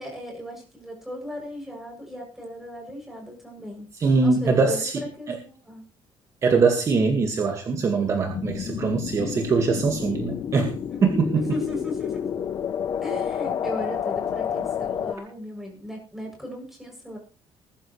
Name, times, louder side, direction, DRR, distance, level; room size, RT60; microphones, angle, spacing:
voice 1, 0.0-3.9 4.2-5.8 10.9-12.5 13.0-17.2, left 1 dB, 5° right, 0 dB, 7.7 m, -37 dB
voice 2, 4.0-5.0 5.3-5.4 6.4-11.4, right 4 dB, 35° right, 3 dB, 2.0 m, -22 dB
sound 1, 8.3-15.1, left 9 dB, 45° left, 0.8 m, -30 dB
21.0 x 12.5 x 3.3 m, 0.38 s
cardioid pair, 155°, 9 cm